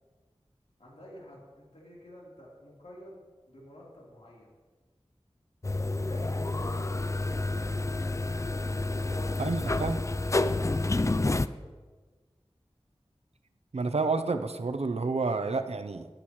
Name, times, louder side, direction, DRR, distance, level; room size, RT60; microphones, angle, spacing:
voice 1, 0.8-3.2 3.5-4.5 5.8-7.8 9.0-10.0 10.5-11.7, equal, 75° left, -5 dB, 3.7 m, -48 dB
sound 1, 5.6-11.5, left 2 dB, 30° left, 0.4 m, -29 dB
voice 2, 9.4-10.0 13.7-16.1, right 3 dB, 75° right, 9 dB, 0.7 m, -29 dB
14.5 x 10.0 x 3.2 m, 1.3 s
wide cardioid pair, 40°, 11 cm